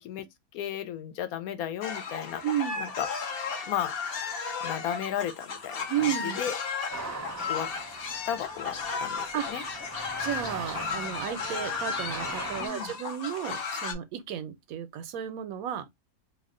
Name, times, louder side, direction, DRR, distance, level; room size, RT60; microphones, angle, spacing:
voice 1, 0.5-2.4 2.8-3.1 3.7-3.9 4.6-6.5 7.5-7.7 8.3-9.6 12.6-12.9, left 10 dB, 85° left, 1.1 m, -34 dB
sound 1, 1.8-13.9, left 5 dB, 60° left, 0.6 m, -34 dB
voice 2, 2.4-2.8 5.9-6.4 9.3-9.6 10.2-15.8, right 10 dB, 80° right, 1.0 m, -33 dB
sound 2, 6.9-12.7, right 2 dB, 20° right, 0.4 m, -40 dB
2.7 x 2.1 x 3.6 m
omnidirectional pair, 1.5 m